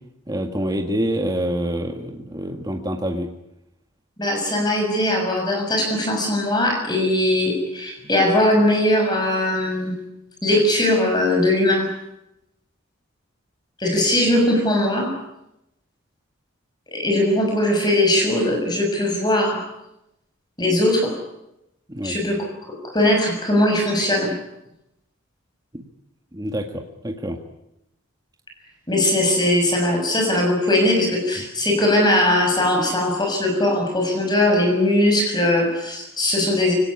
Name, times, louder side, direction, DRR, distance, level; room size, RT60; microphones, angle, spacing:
voice 1, 0.3-3.3 21.9-22.2 25.7-25.8 26.3-27.4, equal, 20° right, 3 dB, 1.8 m, -26 dB
voice 2, 4.2-9.9 10.4-11.9 13.8-15.1 16.9-19.6 20.6-21.1 22.0-22.5 22.8-24.3 28.9-36.7, left 1 dB, 20° left, 2 dB, 6.5 m, -20 dB
24.5 x 18.5 x 9.9 m, 0.85 s
head